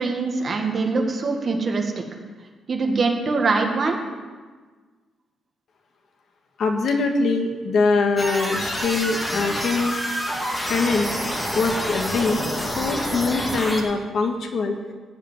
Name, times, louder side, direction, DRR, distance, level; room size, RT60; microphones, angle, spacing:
voice 1, 0.0-2.0 2.7-4.0, right 3 dB, 35° right, 2 dB, 1.7 m, -23 dB
voice 2, 6.6-10.0 10.7-11.1 11.5-14.8, left 3 dB, 55° left, 4 dB, 1.5 m, -23 dB
sound 1, 8.2-13.8, equal, 10° left, 1.8 m, -27 dB
15.0 x 5.2 x 9.2 m, 1.4 s
cardioid pair, 155°, 0 cm